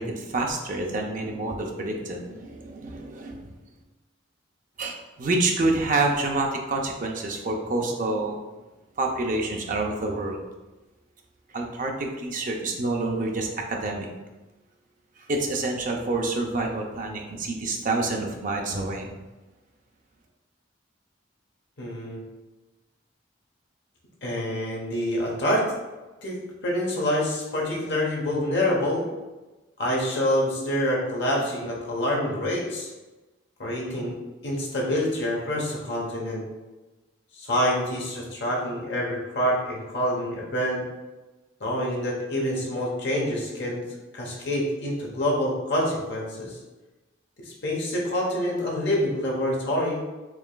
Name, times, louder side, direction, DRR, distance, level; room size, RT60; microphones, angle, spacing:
voice 1, 0.0-3.5 4.8-8.4 9.0-10.4 11.5-14.1 15.3-19.1, right 2 dB, 40° right, 1 dB, 0.5 m, -27 dB
voice 2, 21.8-22.2 24.2-25.6 26.2-29.1 29.8-32.9 33.6-34.1 34.4-36.4 37.3-40.8 41.6-43.8 44.1-46.6 47.4-50.0, left 1 dB, 55° left, -2 dB, 1.0 m, -26 dB
4.7 x 2.9 x 2.2 m, 1.1 s
head